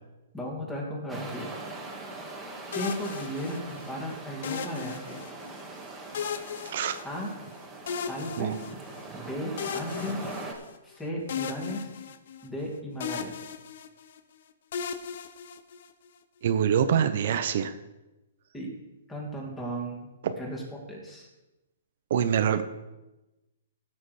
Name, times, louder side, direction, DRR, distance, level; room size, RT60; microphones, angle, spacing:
voice 1, 0.3-1.5 2.7-5.2 7.0-7.3 8.1-8.5 9.1-10.3 10.8-11.9 12.4-13.4 18.5-18.7 19.1-20.1 20.4-20.6 20.9-21.3, equal, 10° left, -2 dB, 2.5 m, -35 dB
sound 1, 1.1-10.5, right 2 dB, 10° right, 1.7 m, -41 dB
sound 2, 2.7-3.9 4.4-5.6 6.1-7.5 7.9-9.0 9.6-10.9 11.3-12.7 13.0-14.2 14.7-16.1, left 7 dB, 60° left, 0.8 m, -37 dB
voice 2, 6.6-7.0 8.4-8.5 16.4-17.7 20.2-20.3 22.1-22.6, right 8 dB, 55° right, 9 dB, 0.7 m, -25 dB
15.5 x 6.3 x 4.9 m, 1.0 s
hypercardioid pair, 155°, 0 cm